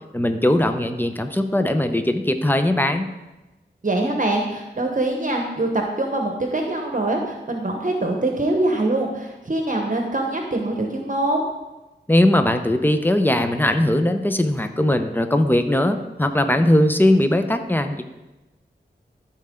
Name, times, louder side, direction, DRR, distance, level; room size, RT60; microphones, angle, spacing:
voice 1, 0.1-3.1 12.1-18.0, left 1 dB, 10° left, 7 dB, 0.7 m, -19 dB
voice 2, 3.8-11.4, right 2 dB, 45° right, 2 dB, 1.0 m, -23 dB
13.0 x 4.4 x 3.7 m, 1.1 s
wide cardioid pair, 55°, 19 cm